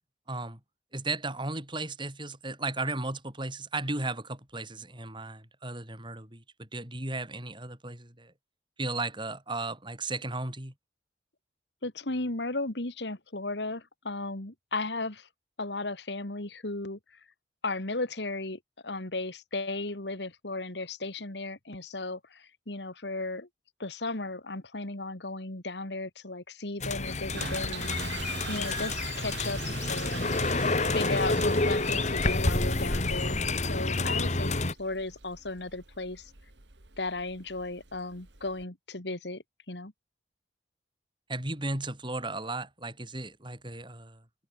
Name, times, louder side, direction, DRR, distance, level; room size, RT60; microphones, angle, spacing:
voice 1, 0.3-0.6 0.9-8.3 8.8-10.7 41.3-44.2, right 2 dB, 25° right, 6.7 m, -35 dB
voice 2, 11.8-15.3 15.6-17.2 17.6-23.5 23.8-29.6 29.9-33.4 33.7-36.3 37.0-39.9, left 2 dB, 70° left, 2.6 m, -35 dB
sound 1, 26.8-34.7, left 2 dB, 40° left, 2.1 m, -28 dB
Toilet flush, 27.0-38.6, right 6 dB, 80° right, 2.7 m, -44 dB
head